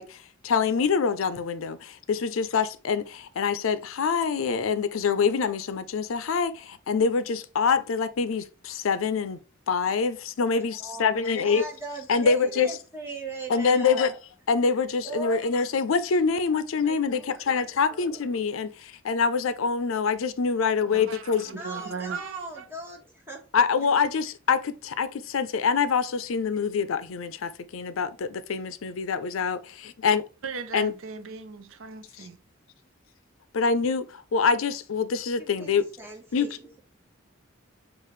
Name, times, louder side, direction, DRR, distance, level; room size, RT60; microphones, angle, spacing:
voice 1, 0.0-9.4 9.7-11.6 12.1-12.7 13.5-14.1 14.5-21.5 23.5-30.2 30.7-30.9 32.2-32.3 33.5-35.9 36.3-36.5, left 5 dB, 90° left, 0.5 m, -25 dB
voice 2, 10.8-14.2 15.0-15.5 16.8-18.2 21.4-23.4 35.4-36.8, right 2 dB, 10° right, 1.3 m, -39 dB
voice 3, 20.9-22.7 30.4-32.4, right 5 dB, 85° right, 0.6 m, -37 dB
6.6 x 2.4 x 3.1 m
head